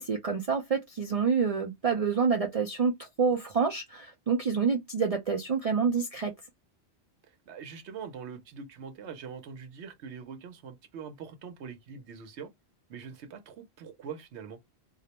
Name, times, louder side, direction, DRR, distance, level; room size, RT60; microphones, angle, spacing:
voice 1, 0.0-6.3, right 5 dB, 60° right, 0.3 m, -27 dB
voice 2, 7.3-12.5 12.9-14.6, right 6 dB, 80° right, 0.9 m, -43 dB
2.4 x 2.0 x 2.8 m
omnidirectional pair, 1.1 m